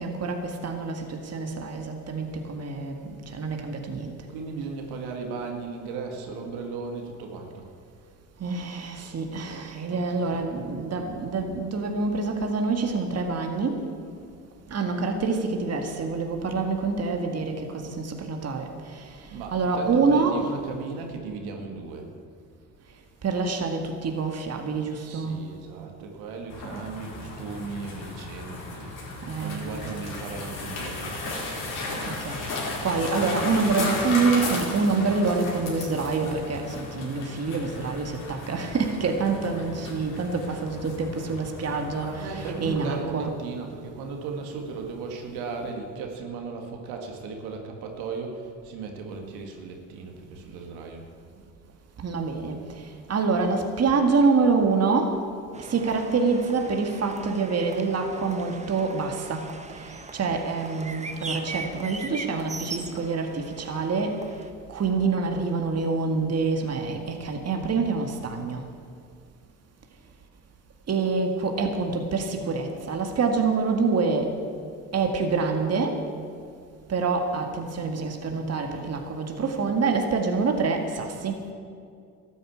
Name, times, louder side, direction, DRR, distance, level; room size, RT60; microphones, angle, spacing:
voice 1, 0.0-4.1 8.4-13.8 14.7-20.5 23.2-25.4 29.3-29.9 32.1-43.3 52.0-55.2 55.6-59.5 59.7-64.3 64.7-68.6 70.9-74.3 74.9-76.0 76.9-81.5, right 4 dB, 40° right, 4 dB, 1.9 m, -26 dB
voice 2, 4.3-7.7 9.8-10.5 19.3-22.1 25.0-31.2 41.9-51.1, right 4 dB, 80° right, 2 dB, 2.0 m, -36 dB
sound 1, 26.5-43.0, left 2 dB, 55° left, 4.7 m, -35 dB
sound 2, 55.5-64.5, right 3 dB, 20° right, 1.2 m, -40 dB
13.0 x 9.4 x 8.7 m, 2.3 s
supercardioid pair, 75°, 38 cm